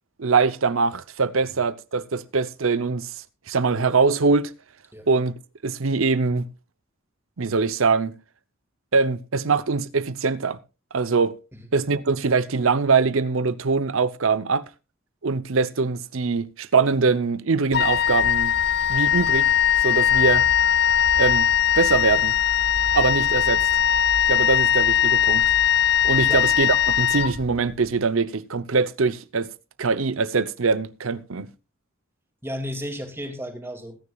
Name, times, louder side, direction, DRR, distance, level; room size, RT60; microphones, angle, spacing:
voice 1, 0.2-3.1 3.5-4.5 5.1-5.3 5.6-6.5 7.4-8.2 8.9-10.6 10.9-11.3 11.7-14.7 15.2-18.5 18.9-19.5 19.8-20.5 21.2-21.5 21.8-22.3 22.9-23.6 24.3-25.5 26.0-29.5 29.8-31.5, right 4 dB, 75° right, 0.7 m, -22 dB
Wind instrument woodwind instrument, 17.7-27.8, left 9 dB, 50° left, 0.7 m, -20 dB
voice 2, 32.4-34.0, equal, 10° right, 2.4 m, -33 dB
21.0 x 9.8 x 2.4 m
head